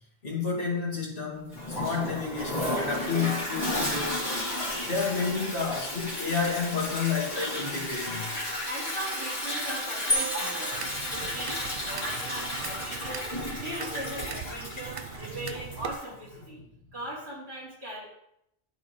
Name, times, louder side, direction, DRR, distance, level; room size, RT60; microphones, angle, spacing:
voice 1, 0.2-4.3 4.8-8.4, left 5 dB, 80° left, -6 dB, 2.3 m, -30 dB
Toilet flush, 1.5-16.1, left 1 dB, 40° left, 2.6 m, -33 dB
voice 2, 8.7-10.7 11.1-11.6 11.8-13.3 13.6-18.0, right 1 dB, 85° right, -8 dB, 3.6 m, -39 dB
sound 1, 10.1-11.9, equal, 20° left, 1.2 m, -32 dB
sound 2, 10.7-16.0, right 7 dB, 55° right, 0.7 m, -41 dB
12.5 x 4.4 x 3.1 m, 0.78 s
omnidirectional pair, 1.1 m